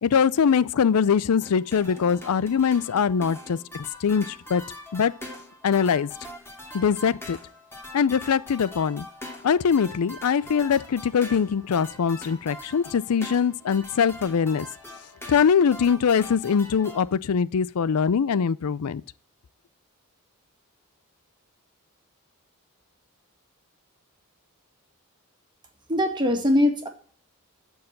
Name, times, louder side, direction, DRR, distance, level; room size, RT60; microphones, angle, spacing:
voice 1, 0.0-4.6 4.9-5.1 5.6-6.1 6.7-7.4 7.9-9.1 9.4-14.7 15.3-19.0, left 6 dB, 80° left, 0.4 m, -22 dB
sound 1, 1.4-17.1, left 1 dB, 10° left, 2.4 m, -43 dB
voice 2, 25.9-26.9, left 1 dB, 20° right, 2.1 m, -21 dB
14.0 x 4.7 x 7.6 m
head